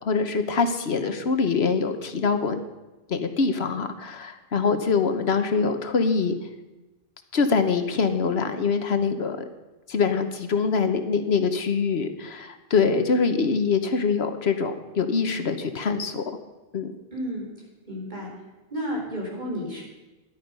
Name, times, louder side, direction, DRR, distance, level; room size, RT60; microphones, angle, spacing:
voice 1, 0.0-2.6 3.1-6.3 7.3-9.4 9.9-16.2 16.7-16.9, left 5 dB, 85° left, 8 dB, 1.3 m, -24 dB
voice 2, 17.1-17.5 17.9-18.3 18.7-19.8, equal, 45° right, -2 dB, 4.1 m, -31 dB
14.0 x 11.0 x 5.5 m, 1.1 s
omnidirectional pair, 1.1 m